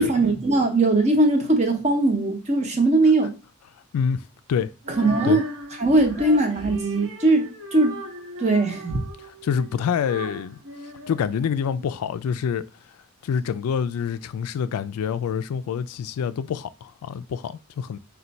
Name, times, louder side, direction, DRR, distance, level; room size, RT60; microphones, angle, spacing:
voice 1, 0.0-3.3 5.0-5.5 5.8-8.0 8.4-9.0, right 2 dB, 30° right, 0.7 m, -20 dB
voice 2, 3.9-4.2 4.5-4.7 5.2-5.4 9.4-10.6 11.1-12.6 13.2-18.0, left 7 dB, 85° left, 0.3 m, -26 dB
Female singing, 4.8-11.9, equal, 60° right, 0.9 m, -38 dB
4.3 x 2.2 x 3.9 m
head